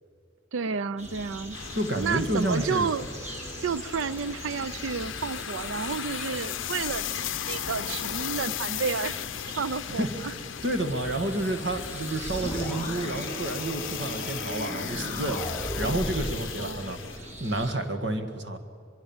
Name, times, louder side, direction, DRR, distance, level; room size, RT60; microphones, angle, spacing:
voice 1, 0.5-1.6 2.0-3.1 3.6-9.2 9.6-10.3 16.6-16.9, right 5 dB, 85° right, 17 dB, 0.5 m, -31 dB
sound 1, 1.0-17.7, equal, 35° right, 2.8 m, -42 dB
sound 2, 1.5-17.2, left 11 dB, 80° left, 0.5 m, -37 dB
voice 2, 1.8-2.9 9.9-10.1 10.6-15.4 15.8-18.6, right 2 dB, 60° right, 7 dB, 1.8 m, -30 dB
sound 3, 12.2-16.4, left 1 dB, 15° left, 3.3 m, -35 dB
23.5 x 22.5 x 7.2 m, 2.3 s
head